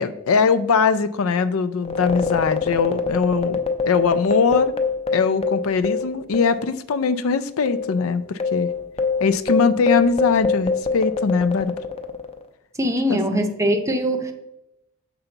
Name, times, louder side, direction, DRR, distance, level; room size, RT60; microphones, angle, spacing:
voice 1, 0.0-3.6 3.9-4.7 5.1-8.7 9.2-11.8 13.1-13.4, left 5 dB, 85° left, 13 dB, 0.4 m, -21 dB
sound 1, 1.8-6.7 6.9-7.0 7.7-12.4, left 4 dB, 30° left, 0.5 m, -24 dB
voice 2, 12.8-14.3, equal, 15° right, 7 dB, 0.6 m, -22 dB
6.8 x 5.8 x 3.9 m, 0.91 s
head